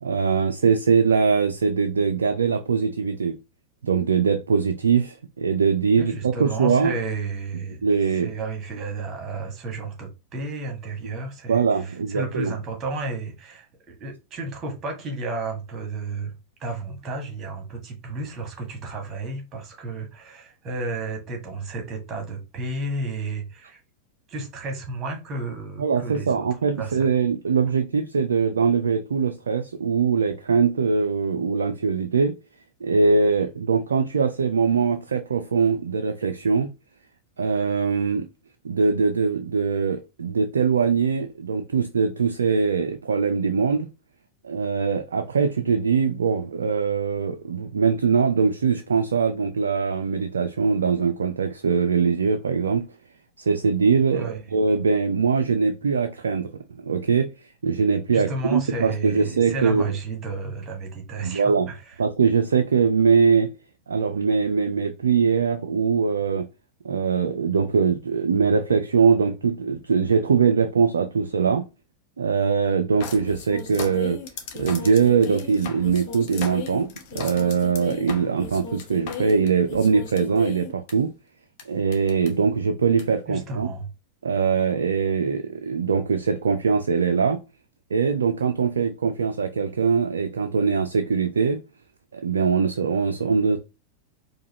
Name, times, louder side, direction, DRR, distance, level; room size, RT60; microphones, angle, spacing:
voice 1, 0.0-3.4 3.8-6.9 7.8-8.3 11.5-12.5 25.8-32.3 32.8-36.7 37.4-38.3 38.6-43.9 44.4-52.9 53.4-57.3 57.6-59.8 61.2-61.7 62.0-63.5 63.9-66.5 66.8-71.6 72.2-74.2 74.5-81.1 81.7-83.7 84.2-87.4 87.9-91.6 92.1-93.6, right 5 dB, 70° right, 0.3 m, -22 dB
voice 2, 5.9-7.8 8.1-16.3 16.6-23.8 24.3-26.5 26.8-27.2 54.1-54.5 58.1-62.0 83.3-83.9, right 3 dB, 30° right, 1.5 m, -32 dB
sound 1, 73.0-80.9 81.6-81.7 81.9-82.3 83.0-83.1, left 6 dB, 45° left, 0.8 m, -36 dB
4.7 x 2.3 x 2.9 m
figure-of-eight pair, 90°, 0 cm